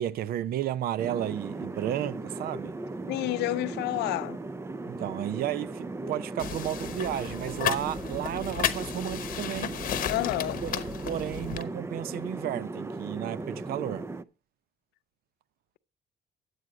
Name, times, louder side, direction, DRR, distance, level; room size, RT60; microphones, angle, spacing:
voice 1, 0.0-2.7 4.9-9.8 10.6-14.1, right 12 dB, 65° right, 0.6 m, -33 dB
sound 1, 1.0-14.2, right 2 dB, 15° right, 0.5 m, -37 dB
voice 2, 3.1-4.4 10.1-10.6, left 17 dB, 80° left, 0.6 m, -29 dB
sound 2, 6.4-11.6, left 11 dB, 55° left, 1.0 m, -33 dB
11.0 x 8.0 x 4.8 m
cardioid pair, 110°, 17 cm